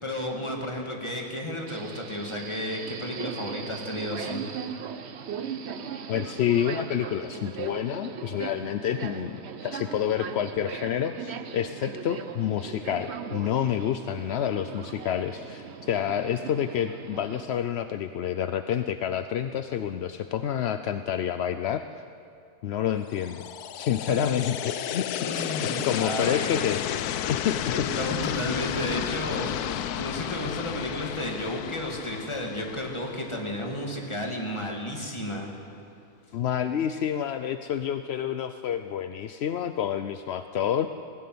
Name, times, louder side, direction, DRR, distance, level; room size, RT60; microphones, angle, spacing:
voice 1, 0.0-4.4 24.1-24.2 25.2-26.6 27.7-35.5, left 1 dB, 20° left, 0 dB, 2.4 m, -33 dB
Subway metro underground, 1.7-17.4, right 7 dB, 50° right, 1.0 m, -39 dB
voice 2, 6.1-9.4 9.6-21.8 22.6-23.4 23.7-25.1 25.6-26.9 27.3-27.9 28.3-28.6 36.3-40.9, left 9 dB, 65° left, 10 dB, 0.7 m, -28 dB
sound 1, 23.1-34.1, left 10 dB, 90° left, 1.2 m, -32 dB
18.5 x 15.5 x 9.5 m, 2.5 s
omnidirectional pair, 1.6 m